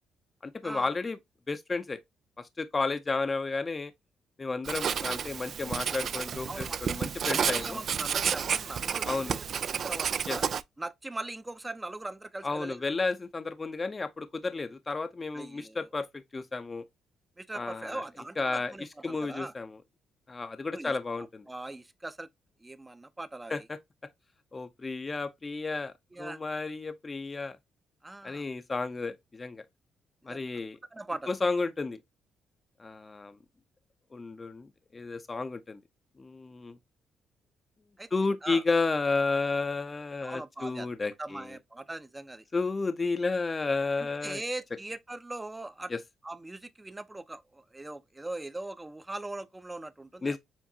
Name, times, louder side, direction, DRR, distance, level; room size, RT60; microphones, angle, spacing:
voice 1, 0.4-1.2 1.5-2.0 2.4-3.9 4.4-7.8 9.0-9.4 10.3-10.4 12.4-16.8 17.5-18.0 18.4-18.7 19.0-19.8 20.3-21.4 23.5-23.8 24.5-27.6 28.2-29.6 30.2-30.8 31.3-32.0 32.8-33.4 34.1-35.8 36.2-36.8 38.1-41.6 42.5-44.4 45.9-46.0 50.2-50.4, left 3 dB, 25° left, 0.6 m, -32 dB
Writing, 4.6-10.6, right 7 dB, 55° right, 0.3 m, -31 dB
voice 2, 7.3-10.4 10.8-12.9 15.3-15.8 17.4-19.5 20.7-22.3 22.6-23.5 26.1-26.4 28.0-28.4 30.3-30.4 30.9-31.3 38.0-38.1 38.4-38.6 40.2-40.9 41.2-42.4 44.0-45.9 46.2-50.4, right 2 dB, 15° right, 0.6 m, -40 dB
7.2 x 2.5 x 2.7 m
cardioid pair, 90°, 0 cm